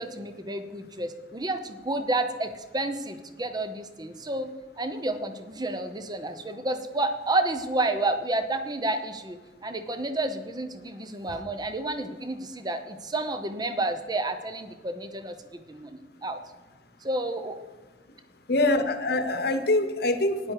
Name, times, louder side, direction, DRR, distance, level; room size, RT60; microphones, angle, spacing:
voice 1, 0.0-4.5 4.8-16.4 17.0-17.6, right 2 dB, 25° right, 9 dB, 0.8 m, -30 dB
voice 2, 18.5-20.5, left 2 dB, 60° left, 9 dB, 1.0 m, -24 dB
12.5 x 10.0 x 4.8 m, 1.2 s
head